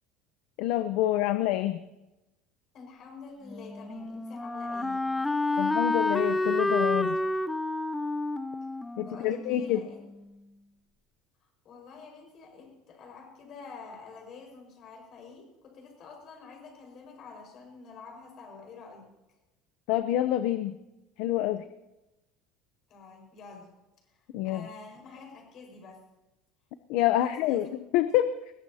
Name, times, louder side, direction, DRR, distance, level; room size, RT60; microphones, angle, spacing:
voice 1, 0.6-1.8 5.6-7.2 9.0-9.8 19.9-20.7 21.2-21.6 24.3-24.7 26.9-27.7 27.9-28.3, left 13 dB, 60° left, 11 dB, 0.7 m, -27 dB
voice 2, 2.7-5.1 9.0-10.0 11.6-19.1 22.9-23.7 24.4-26.0 27.1-27.7, left 4 dB, 35° left, 2 dB, 5.2 m, -48 dB
Wind instrument woodwind instrument, 3.5-10.3, left 2 dB, 5° left, 0.4 m, -30 dB
20.5 x 18.0 x 2.8 m, 0.97 s
cardioid pair, 170°, 0 cm